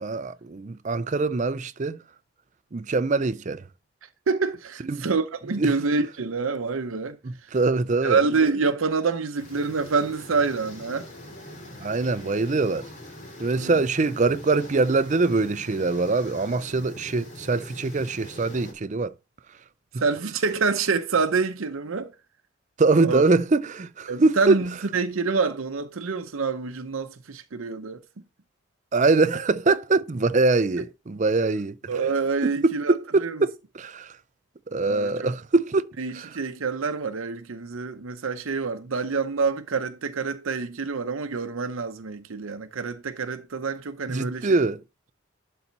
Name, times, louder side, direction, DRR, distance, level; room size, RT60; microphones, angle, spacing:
voice 1, 0.0-2.0 2.7-3.6 4.9-5.1 5.6-5.7 7.2-8.2 11.8-12.9 13.4-19.1 22.8-24.6 28.9-31.8 32.4-34.1 34.7-35.9 36.1-36.3 44.1-44.8, right 3 dB, 35° right, 0.5 m, -23 dB
voice 2, 4.3-7.2 8.0-11.1 13.5-13.7 20.0-22.1 23.0-23.2 24.1-28.0 31.9-33.4 34.8-35.3 36.0-44.6, right 4 dB, 75° right, 0.7 m, -27 dB
sound 1, 9.4-18.7, left 1 dB, 40° left, 2.6 m, -43 dB
11.5 x 4.2 x 4.0 m
head